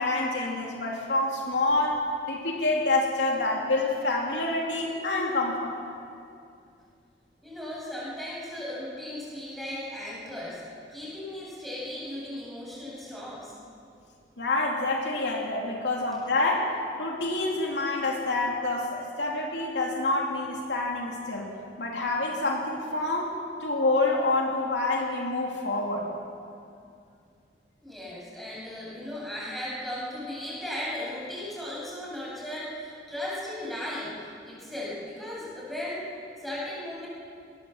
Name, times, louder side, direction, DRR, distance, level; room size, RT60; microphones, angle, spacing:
voice 1, 0.0-2.0 2.3-5.8 14.4-26.1, left 2 dB, 80° left, -1 dB, 3.1 m, -27 dB
voice 2, 7.4-13.5 27.8-37.1, left 1 dB, ahead, -6 dB, 7.8 m, -36 dB
21.0 x 20.0 x 7.4 m, 2.4 s
head